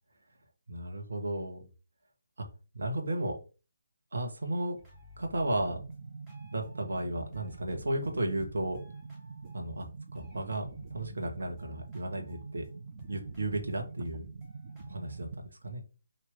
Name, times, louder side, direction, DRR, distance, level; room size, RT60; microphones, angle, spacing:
voice 1, 0.7-1.7 2.4-2.5 2.7-3.4 4.1-4.8 5.2-5.8 6.5-8.8 9.5-9.9 10.1-12.6 13.1-14.3 14.9-15.8, right 1 dB, 60° right, 2 dB, 1.3 m, -34 dB
sound 1, 4.8-7.0 7.3-9.8 10.1-15.3, left 2 dB, 10° right, 1.1 m, -55 dB
sound 2, 5.3-15.3, right 4 dB, 40° right, 0.4 m, -45 dB
4.5 x 2.7 x 3.6 m, 0.33 s
figure-of-eight pair, 145°, 0 cm